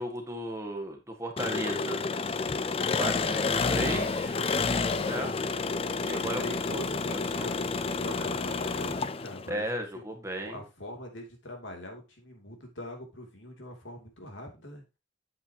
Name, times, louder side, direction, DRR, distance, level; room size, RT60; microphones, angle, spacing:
voice 1, 0.0-2.0 2.8-4.4 5.0-5.3 6.0-6.4 6.7-6.8 7.1-7.5 9.5-10.6, right 1 dB, 15° right, 3 dB, 1.6 m, -35 dB
Engine, 1.4-9.5, left 4 dB, 30° left, 0.4 m, -30 dB
voice 2, 6.4-9.6 9.9-10.0 10.4-14.8, left 1 dB, 75° left, 2 dB, 2.8 m, -42 dB
8.2 x 8.0 x 2.9 m, 0.26 s
head